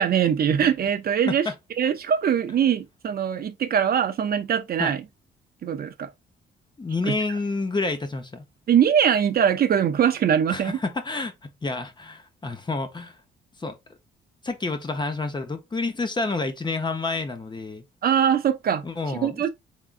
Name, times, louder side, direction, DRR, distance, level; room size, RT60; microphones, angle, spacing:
voice 1, 0.0-1.5 1.8-5.0 5.6-6.1 7.0-7.1 8.7-10.8 18.0-19.5, right 8 dB, 50° right, 0.5 m, -22 dB
voice 2, 6.8-8.4 10.5-11.3 11.6-13.2 13.6-13.7 14.4-17.8 18.8-19.5, left 3 dB, 20° left, 0.8 m, -29 dB
3.6 x 3.6 x 2.5 m
cardioid pair, 90°, 20 cm